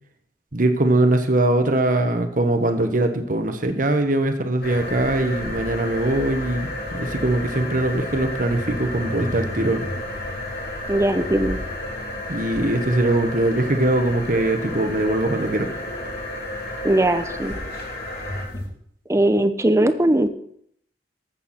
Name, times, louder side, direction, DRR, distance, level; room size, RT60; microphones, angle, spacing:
voice 1, 0.5-9.9 12.3-15.7, right 1 dB, 45° right, 6 dB, 1.3 m, -21 dB
sound 1, 4.6-18.7, left 1 dB, 55° left, 3.1 m, -31 dB
voice 2, 10.9-11.6 16.8-17.5 19.1-20.3, right 1 dB, 15° right, 10 dB, 0.7 m, -19 dB
13.5 x 8.3 x 4.3 m, 0.68 s
head